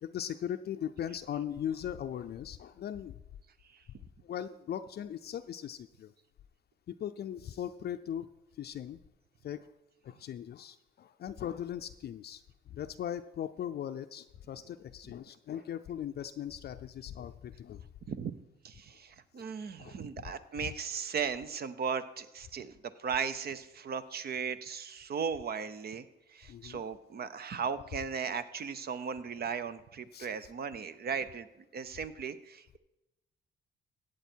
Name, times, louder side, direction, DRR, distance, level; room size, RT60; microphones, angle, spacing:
voice 1, 0.0-3.2 4.2-6.1 6.9-8.3 8.6-9.0 9.4-9.7 10.0-17.8 19.4-19.5 19.8-20.0 20.6-20.7 26.5-26.8 30.1-30.5, left 10 dB, 55° left, 9 dB, 0.5 m, -39 dB
voice 2, 18.6-31.5 31.7-32.8, right 6 dB, 50° right, 13 dB, 0.8 m, -37 dB
15.0 x 7.9 x 4.5 m, 0.96 s
cardioid pair, 90°, 20 cm